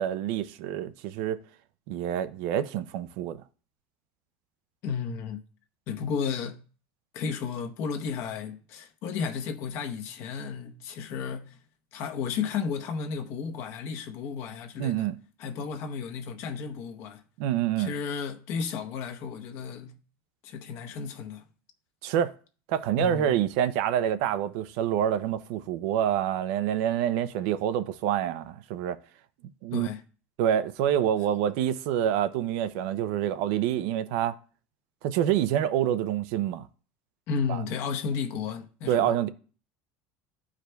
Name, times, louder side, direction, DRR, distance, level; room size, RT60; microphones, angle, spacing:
voice 1, 0.0-1.4 1.9-3.4 14.8-15.2 17.4-17.9 22.0-22.3 22.7-29.0 29.6-29.9 30.4-34.4 35.0-36.7 37.5-37.6 38.9-39.3, right 10 dB, 70° right, 0.5 m, -27 dB
voice 2, 4.8-5.4 5.9-6.6 7.1-11.6 11.9-15.1 15.4-17.2 17.8-20.0 20.4-21.4 23.0-23.4 29.7-30.0 37.3-39.2, left 6 dB, 50° left, 0.9 m, -33 dB
13.0 x 4.8 x 2.3 m
cardioid pair, 160°, 6 cm